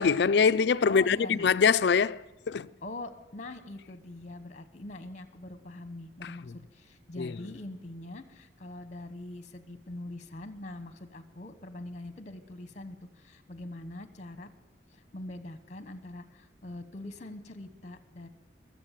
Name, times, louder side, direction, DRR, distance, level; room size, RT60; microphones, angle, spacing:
voice 1, 0.0-2.7 6.2-6.3 7.2-7.4, left 6 dB, 60° left, 0.4 m, -24 dB
voice 2, 0.8-1.5 2.8-14.5 14.9-18.3, left 2 dB, 35° left, 1.1 m, -43 dB
22.0 x 7.5 x 7.5 m
head